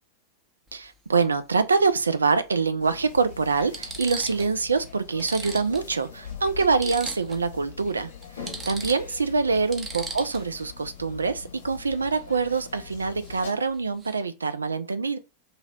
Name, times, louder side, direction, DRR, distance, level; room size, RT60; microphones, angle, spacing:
sound 1, 0.7-0.9 2.3-2.4 3.1-3.2 3.6-4.6 4.9-5.0 5.2-7.5 7.8-7.9 8.2-10.6 13.2-13.5 13.7-14.2, right 3 dB, 20° right, 0.6 m, -38 dB
voice 1, 0.7-8.1 8.4-15.2, right 4 dB, 75° right, 0.3 m, -25 dB
sound 2, 2.8-13.5, left 6 dB, 60° left, 1.0 m, -43 dB
2.9 x 2.8 x 2.3 m
figure-of-eight pair, 90°, 0 cm